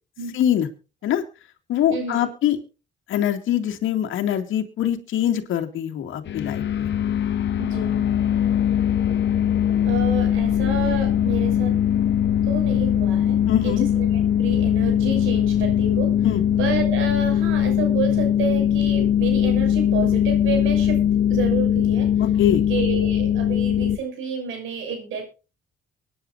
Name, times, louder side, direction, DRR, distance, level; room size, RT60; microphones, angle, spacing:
voice 1, 0.3-0.7 1.0-1.2 1.7-2.6 3.1-6.9 13.5-13.9 16.2-16.4 22.2-22.6, left 10 dB, 80° left, 4 dB, 2.3 m, -23 dB
voice 2, 1.9-2.3 7.6-8.1 9.8-11.8 12.5-16.3 16.6-21.0 21.3-22.2 22.7-25.2, right 5 dB, 90° right, 5 dB, 6.3 m, -30 dB
sound 1, 6.2-24.0, left 10 dB, 65° left, 1.0 m, -21 dB
24.5 x 10.0 x 2.6 m, 0.32 s
cardioid pair, 90°, 20 cm